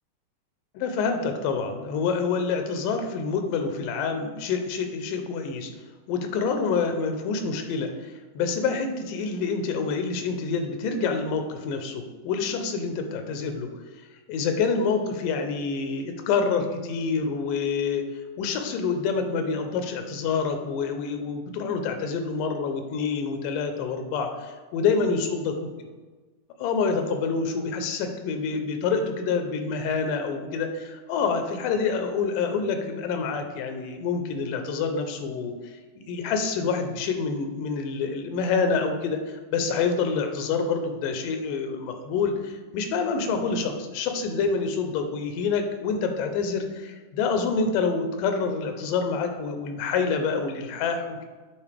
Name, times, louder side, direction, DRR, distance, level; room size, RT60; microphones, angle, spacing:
voice 1, 0.8-5.7 6.1-13.7 14.3-25.5 26.6-35.7 36.1-51.3, left 5 dB, 85° left, 6 dB, 2.2 m, -27 dB
8.8 x 4.1 x 3.3 m, 1.3 s
omnidirectional pair, 3.9 m